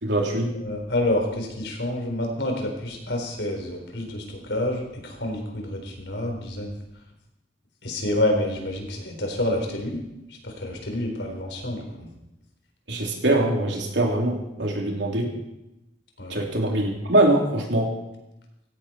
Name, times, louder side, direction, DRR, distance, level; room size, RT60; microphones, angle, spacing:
voice 1, 0.0-0.6 12.9-15.3 16.3-18.0, right 1 dB, 85° right, 0 dB, 3.3 m, -23 dB
voice 2, 0.6-6.7 7.8-10.0 10.4-12.1 16.2-16.4, left 1 dB, 80° left, 2 dB, 4.1 m, -28 dB
17.5 x 16.0 x 4.4 m, 0.93 s
head